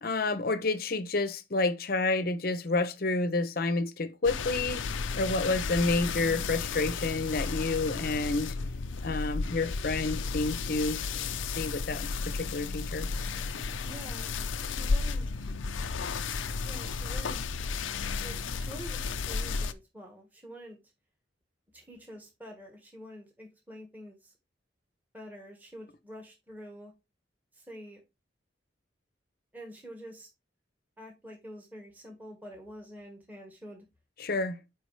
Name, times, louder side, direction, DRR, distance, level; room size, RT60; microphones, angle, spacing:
voice 1, 0.0-4.8 5.2-8.5 9.0-11.0 11.4-13.1 34.2-34.6, left 3 dB, 50° left, 0.7 m, -29 dB
sound 1, 4.2-19.7, left 4 dB, 80° left, 0.6 m, -33 dB
voice 2, 13.8-14.3 14.6-15.5 16.6-17.4 18.2-20.8 21.7-24.3 25.1-26.9 27.5-28.0 29.5-30.3 31.0-33.8, equal, 10° right, 1.4 m, -47 dB
8.0 x 4.9 x 3.2 m
head